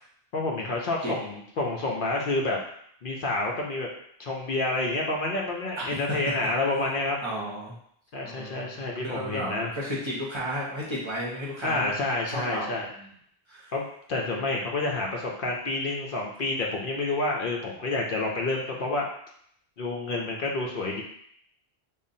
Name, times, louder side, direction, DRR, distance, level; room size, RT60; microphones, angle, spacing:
voice 1, 0.3-2.6 3.0-3.9 4.2-7.2 8.1-9.7 11.6-12.9 13.7-19.1 19.8-21.0, left 2 dB, 60° left, -1 dB, 0.7 m, -29 dB
voice 2, 7.2-7.8 8.2-11.9 12.3-13.1 13.5-13.7, equal, 30° right, -5 dB, 0.7 m, -33 dB
5.4 x 2.0 x 2.6 m, 0.68 s
omnidirectional pair, 1.0 m